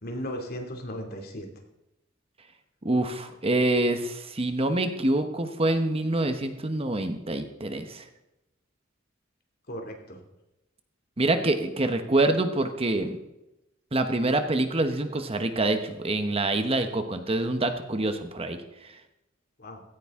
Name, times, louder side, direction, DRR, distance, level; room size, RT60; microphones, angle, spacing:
voice 1, 0.0-1.5 9.7-10.2 19.6-19.8, equal, 50° left, 3 dB, 2.7 m, -36 dB
voice 2, 2.8-8.0 11.2-13.2 13.9-18.6, right 2 dB, 30° right, 8 dB, 1.0 m, -26 dB
16.5 x 14.5 x 3.7 m, 0.94 s
head